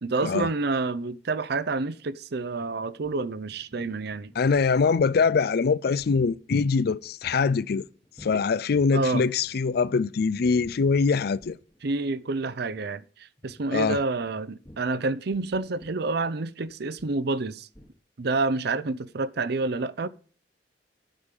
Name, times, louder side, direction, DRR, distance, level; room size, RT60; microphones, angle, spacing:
voice 1, 0.0-4.3 8.9-9.2 11.8-13.0 13.4-17.7 18.2-20.1, right 3 dB, 65° right, 0.6 m, -28 dB
sound 1, 2.6-8.5 8.7-10.0 10.3-11.8 12.1-12.3 12.6-12.8 13.4-13.6 14.2-17.5 17.8-17.9, equal, 15° left, 1.2 m, -52 dB
voice 2, 4.4-7.8 8.2-11.6 13.7-14.0, left 5 dB, 60° left, 0.4 m, -23 dB
10.0 x 5.3 x 8.3 m
head